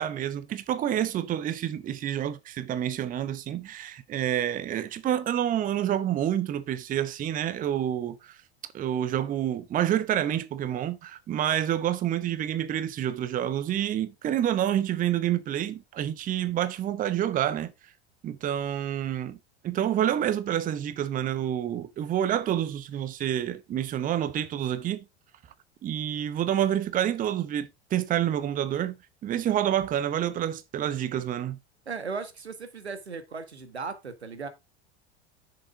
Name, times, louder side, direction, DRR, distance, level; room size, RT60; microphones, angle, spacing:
voice 1, 0.0-8.4 8.7-17.7 18.2-19.4 19.6-25.0 25.8-28.9 29.2-31.6, right 10 dB, 25° right, 0.8 m, -28 dB
voice 2, 31.8-34.5, right 5 dB, 80° right, 1.4 m, -37 dB
7.5 x 6.8 x 3.6 m
figure-of-eight pair, 80°, 32 cm